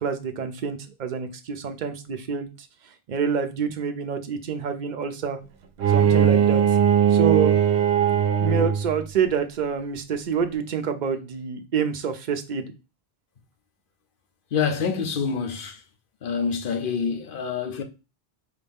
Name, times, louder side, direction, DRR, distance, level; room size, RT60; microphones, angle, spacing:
voice 1, 0.0-2.7 3.1-5.4 5.9-6.6 7.1-7.6 8.4-12.7, right 6 dB, 55° right, 0.7 m, -27 dB
Bowed string instrument, 5.8-9.0, right 8 dB, 85° right, 0.8 m, -19 dB
voice 2, 14.5-15.8 16.2-17.8, left 6 dB, 60° left, 0.9 m, -26 dB
4.8 x 2.7 x 3.5 m
omnidirectional pair, 1.0 m